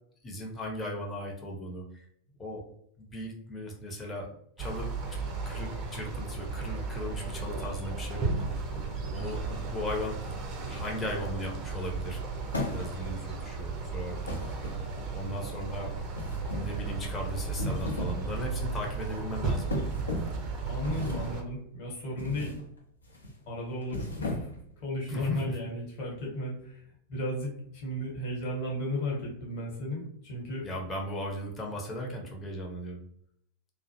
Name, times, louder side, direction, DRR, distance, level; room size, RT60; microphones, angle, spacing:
voice 1, 0.2-2.1 2.4-2.7 3.0-5.2 5.4-8.7 9.1-10.3 10.5-12.2 12.7-14.7 15.1-15.9 16.5-19.7 25.1-25.6 30.6-33.0, left 1 dB, 20° left, -1 dB, 0.6 m, -37 dB
sound 1, 4.6-21.4, right 4 dB, 35° right, 0.5 m, -35 dB
sound 2, 12.5-13.2 14.3-15.2 16.1-16.8 17.4-18.3 18.6-18.9 19.7-20.4 20.8-21.4 22.2-22.6 23.0-23.3 23.8-24.7, left 1 dB, 75° left, 0.5 m, -35 dB
voice 2, 20.6-22.5 23.5-24.5 24.8-26.8 27.1-30.6, left 1 dB, 45° left, -3 dB, 1.0 m, -34 dB
2.3 x 2.0 x 2.8 m, 0.69 s
figure-of-eight pair, 90°, 0 cm